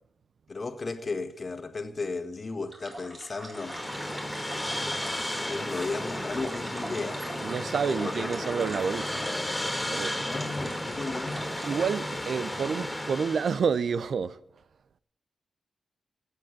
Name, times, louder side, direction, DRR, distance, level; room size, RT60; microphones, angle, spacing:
voice 1, 0.5-3.8 5.4-7.2 7.9-8.5 10.3-11.5, left 3 dB, 45° left, 1.6 m, -35 dB
sound 1, 2.7-12.0, right 1 dB, 30° right, 4.3 m, -43 dB
sound 2, 3.5-13.6, left 1 dB, 10° left, 3.8 m, -33 dB
voice 2, 7.4-9.2 9.9-10.2 11.6-14.4, right 6 dB, 70° right, 0.7 m, -29 dB
16.0 x 8.3 x 9.0 m
cardioid pair, 65°, 0 cm